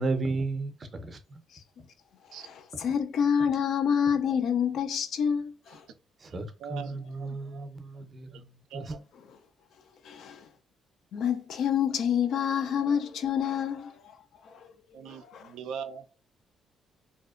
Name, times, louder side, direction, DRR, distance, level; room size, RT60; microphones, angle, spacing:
voice 1, 0.0-1.4 6.3-8.4 8.7-8.9, right 3 dB, 40° right, 0.5 m, -33 dB
voice 2, 2.4-5.8 10.0-10.4 11.1-14.1 14.4-14.7 15.3-15.4, left 8 dB, 70° left, 0.4 m, -28 dB
voice 3, 6.6-7.7 8.3-8.4 8.7-9.0 14.9-16.2, right 7 dB, 85° right, 0.3 m, -41 dB
2.6 x 2.0 x 2.3 m
cardioid pair, 90°, 0 cm